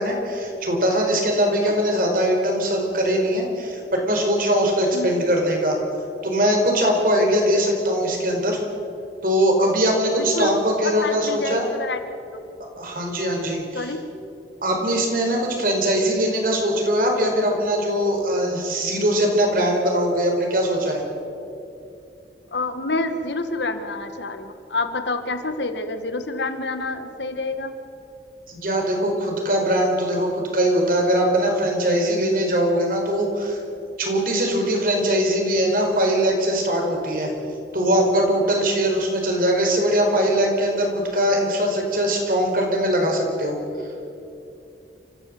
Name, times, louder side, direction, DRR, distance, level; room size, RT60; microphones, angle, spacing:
voice 1, 0.0-5.8 6.2-8.6 9.2-11.6 12.8-13.9 14.6-21.0 28.5-33.6 34.0-37.3 37.7-43.6, equal, 50° right, 1 dB, 4.9 m, -21 dB
voice 2, 4.9-5.2 10.2-10.5 10.8-12.0 12.3-12.4 13.7-14.0 22.5-27.7, left 2 dB, 85° left, 8 dB, 1.9 m, -28 dB
29.5 x 15.5 x 7.9 m, 2.7 s
head